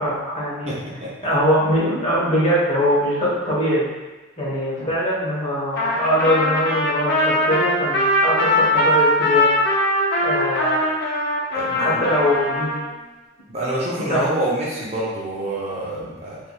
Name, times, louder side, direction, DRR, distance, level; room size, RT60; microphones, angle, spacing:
voice 1, 0.0-0.7 1.2-3.9 4.4-9.5 10.2-10.9 11.7-12.8 14.1-14.3, equal, 35° left, -8 dB, 1.0 m, -22 dB
voice 2, 0.7-1.1 11.5-12.0 13.5-16.4, right 1 dB, 35° right, -6 dB, 0.6 m, -27 dB
Trumpet, 5.8-12.9, left 1 dB, 50° left, 0.5 m, -21 dB
3.3 x 2.6 x 2.3 m, 1.2 s
head